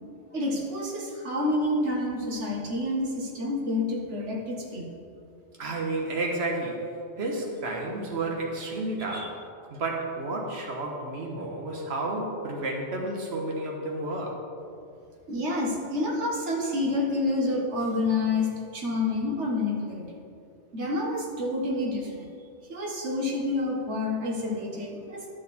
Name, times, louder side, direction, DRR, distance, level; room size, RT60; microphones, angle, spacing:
voice 1, 0.3-4.9 9.1-9.3 15.3-20.0 20.7-22.3 22.7-25.3, left 2 dB, 85° right, -1 dB, 1.6 m, -28 dB
voice 2, 5.6-9.4 9.7-14.4, right 2 dB, 65° right, -1 dB, 1.5 m, -31 dB
10.5 x 6.5 x 4.2 m, 2.4 s
omnidirectional pair, 1.2 m